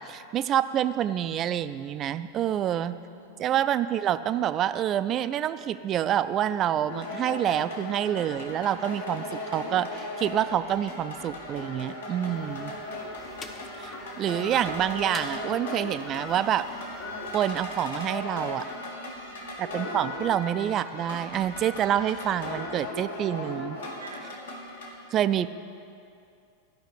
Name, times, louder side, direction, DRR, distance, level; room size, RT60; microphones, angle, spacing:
voice 1, 0.0-3.0 3.4-12.7 13.8-16.7 17.3-18.7 19.6-23.8 25.1-25.5, right 10 dB, 30° right, 13 dB, 0.3 m, -27 dB
voice 2, 2.4-3.8 18.9-19.6 24.0-24.3, right 3 dB, 70° right, 7 dB, 0.7 m, -50 dB
sound 1, 6.9-24.9, left 1 dB, 70° left, 1.8 m, -37 dB
sound 2, 12.3-17.5, left 3 dB, 25° left, 0.8 m, -46 dB
12.5 x 5.8 x 8.5 m, 2.5 s
figure-of-eight pair, 90°, 0 cm